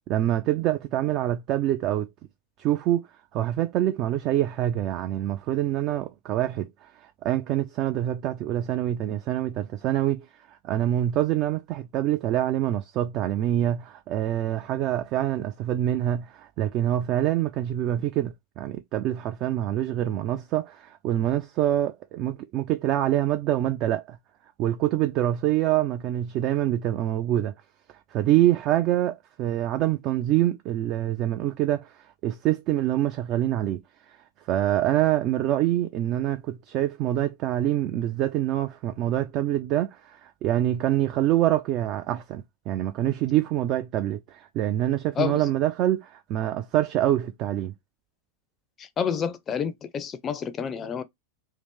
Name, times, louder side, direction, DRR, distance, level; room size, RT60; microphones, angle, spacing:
voice 1, 0.1-2.1 2.6-3.0 3.3-6.9 7.2-10.3 10.6-24.2 24.6-27.5 28.1-31.9 32.2-33.8 34.5-47.7, right 13 dB, 40° right, 0.4 m, -25 dB
voice 2, 48.8-51.0, left 7 dB, 25° left, 0.5 m, -29 dB
2.8 x 2.5 x 3.5 m
figure-of-eight pair, 90°, 0 cm